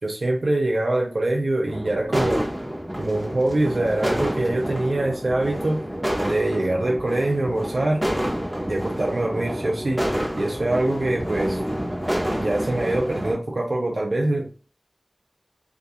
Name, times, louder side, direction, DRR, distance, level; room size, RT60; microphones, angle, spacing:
voice 1, 0.0-2.5 3.0-5.8 6.2-8.0 8.7-10.0 10.4-11.6 12.4-14.5, right 2 dB, 80° right, 0 dB, 0.4 m, -24 dB
sound 1, 1.7-13.3, equal, 20° right, 0.5 m, -28 dB
2.3 x 2.3 x 2.6 m, 0.36 s
wide cardioid pair, 55°, 0 cm